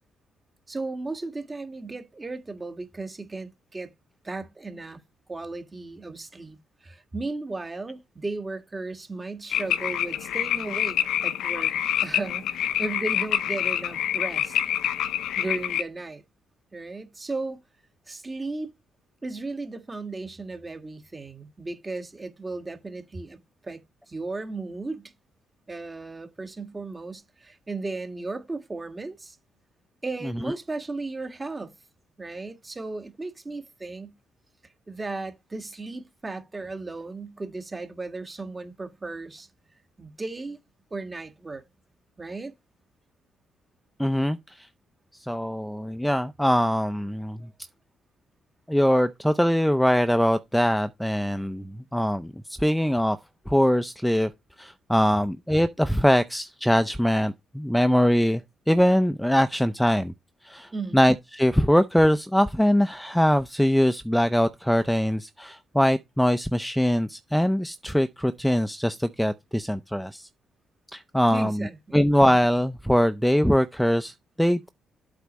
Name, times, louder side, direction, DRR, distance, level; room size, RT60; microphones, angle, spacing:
voice 1, 0.7-3.9 4.2-5.0 5.3-11.7 12.0-14.6 15.4-16.2 16.7-17.6 18.1-18.7 19.2-25.1 25.7-29.4 30.0-31.7 32.2-34.1 34.9-39.5 40.0-40.6 40.9-41.6 42.2-42.5 60.7-61.0 71.3-72.0, right 3 dB, 20° right, 1.5 m, -35 dB
sound 1, 9.5-15.8, left 11 dB, 80° left, 0.7 m, -26 dB
voice 2, 44.0-44.7 45.1-47.5 48.7-52.3 52.6-53.2 53.5-54.3 54.6-60.1 60.4-70.3 70.9-71.7 71.9-74.7, equal, ahead, 0.5 m, -22 dB
8.2 x 4.2 x 6.0 m
cardioid pair, 90°, 0 cm